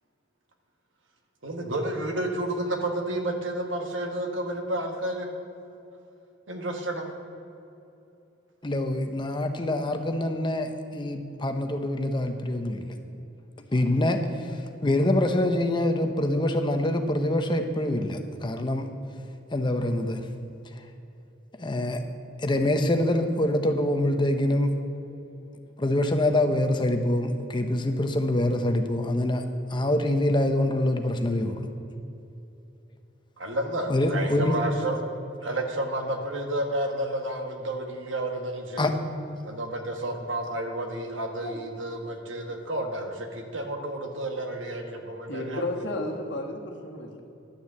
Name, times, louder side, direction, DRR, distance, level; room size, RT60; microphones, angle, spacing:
voice 1, 1.4-5.3 6.5-7.1 33.4-35.0 35.4-38.9 39.4-45.6, right 1 dB, 85° right, 3 dB, 1.4 m, -31 dB
voice 2, 8.6-13.0 13.7-18.9 19.5-20.3 21.6-22.0 22.4-24.7 25.8-29.4 29.7-31.7 33.9-34.6 38.8-39.0 41.4-41.6, left 1 dB, 25° left, 6 dB, 0.7 m, -25 dB
voice 3, 45.3-47.2, left 1 dB, 65° left, 1 dB, 1.4 m, -33 dB
11.0 x 6.9 x 7.4 m, 2.9 s
head